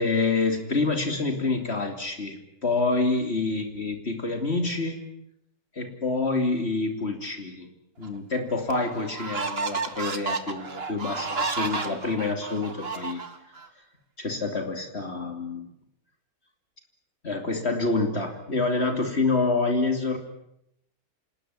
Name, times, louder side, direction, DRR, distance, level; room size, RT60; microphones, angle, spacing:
voice 1, 0.0-5.0 5.7-7.7 8.0-13.2 14.2-15.7 17.2-20.2, left 3 dB, 45° left, 5 dB, 3.1 m, -27 dB
sound 1, 8.0-8.1 8.7-13.7, right 4 dB, 40° right, 2.0 m, -32 dB
27.5 x 19.0 x 9.8 m, 0.79 s
omnidirectional pair, 1.6 m